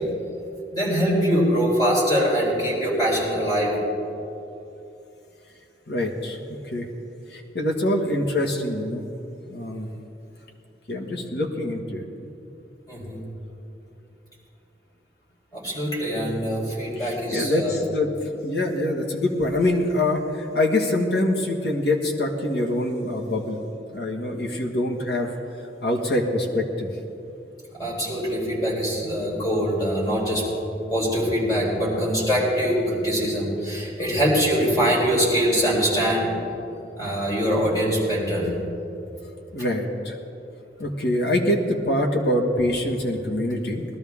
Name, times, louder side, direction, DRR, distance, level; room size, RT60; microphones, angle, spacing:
voice 1, 0.7-3.7 12.9-13.2 15.5-17.8 27.8-30.4 30.9-36.3 37.0-38.5, equal, 20° left, -5 dB, 4.1 m, -23 dB
voice 2, 5.9-6.4 6.7-6.9 7.3-9.1 9.5-9.9 10.9-12.3 16.1-16.4 17.0-18.1 18.4-23.6 23.9-25.3 25.8-26.9 39.5-40.2 40.8-43.8, left 1 dB, 75° left, 1 dB, 1.6 m, -25 dB
20.0 x 12.5 x 3.6 m, 2.8 s
head